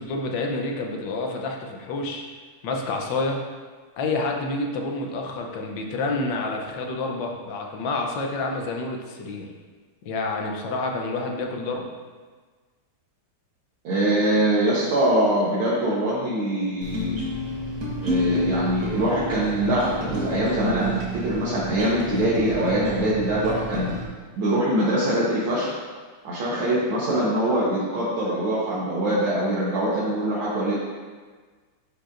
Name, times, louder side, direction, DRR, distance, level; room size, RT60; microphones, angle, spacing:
voice 1, 0.0-2.2 2.6-3.4 4.0-9.5 10.0-11.9, left 3 dB, 65° left, 1 dB, 1.4 m, -28 dB
voice 2, 13.8-17.2 18.0-24.0 24.4-25.7 26.2-30.7, right 1 dB, 70° right, -9 dB, 2.0 m, -23 dB
sound 1, 16.8-24.0, equal, 45° right, 1.4 m, -30 dB
10.0 x 4.9 x 2.5 m, 1.5 s
omnidirectional pair, 2.4 m